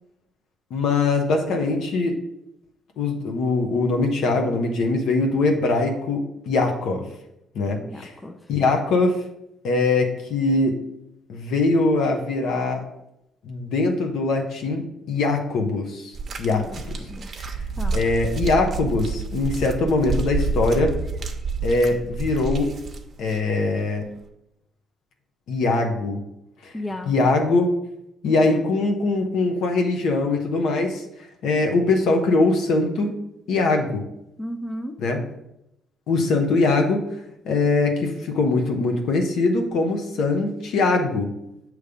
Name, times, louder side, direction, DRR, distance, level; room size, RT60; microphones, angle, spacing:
voice 1, 0.7-2.2 3.0-7.1 7.5-8.1 8.5-9.2 9.6-10.8 11.3-12.8 13.4-16.1 16.4-16.9 17.4-17.5 17.9-21.0 21.6-22.7 23.2-24.1 25.5-26.2 26.6-26.7 27.1-27.7 28.2-31.0 31.4-33.2 33.5-34.0 35.0-35.2 36.1-37.1 37.4-41.3, left 3 dB, 80° left, 3 dB, 1.0 m, -22 dB
voice 2, 7.8-8.4 16.5-17.3 17.8-18.0 26.7-27.1 34.4-34.9, left 1 dB, 20° left, 6 dB, 0.6 m, -34 dB
sound 1, 16.1-23.4 24.2-24.3, right 4 dB, 45° right, 0.8 m, -29 dB
7.0 x 3.2 x 5.1 m, 0.82 s
cardioid pair, 90°, 0 cm